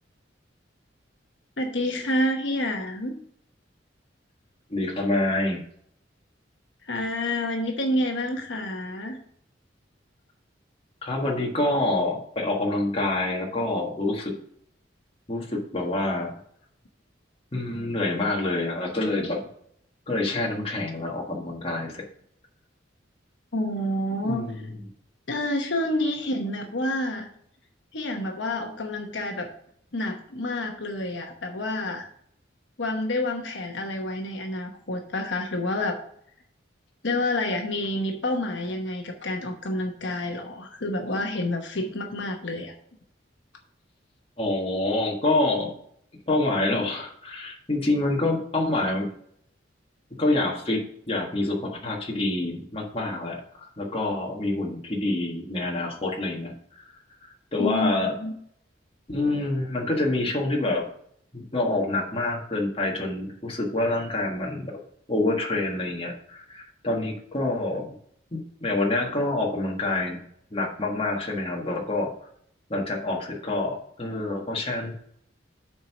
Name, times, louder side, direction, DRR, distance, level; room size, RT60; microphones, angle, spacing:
voice 1, 1.6-3.2 6.8-9.2 23.5-24.4 25.3-27.3 27.9-29.5 29.9-32.1 32.8-36.0 37.0-42.7 57.6-58.3, left 1 dB, 70° left, 3 dB, 1.1 m, -28 dB
voice 2, 4.7-5.6 11.0-14.3 15.3-16.3 17.5-19.4 20.1-22.0 24.2-24.5 44.4-45.7 46.3-49.1 50.1-53.4 53.8-56.9 57.2-58.1 59.1-60.9 61.3-64.7 65.1-67.9 68.3-70.2 70.5-72.1 72.7-74.9, left 2 dB, 30° left, -1 dB, 1.6 m, -27 dB
7.3 x 4.7 x 6.0 m, 0.66 s
head